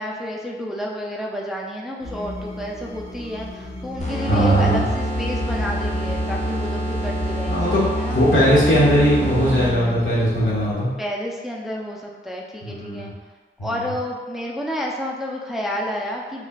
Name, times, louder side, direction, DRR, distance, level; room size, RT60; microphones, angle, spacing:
voice 1, 0.0-8.2 11.0-13.1 13.6-16.5, equal, ahead, -2 dB, 0.4 m, -30 dB
sound 1, 2.0-10.7, equal, 50° left, 1.2 m, -34 dB
sound 2, 4.0-9.9, equal, 35° left, 0.8 m, -26 dB
voice 2, 4.3-4.8 7.5-7.8 8.1-10.9 12.6-13.1 13.6-13.7, equal, 80° left, -9 dB, 1.4 m, -19 dB
4.4 x 2.6 x 2.3 m, 1.3 s
wide cardioid pair, 95°, 20 cm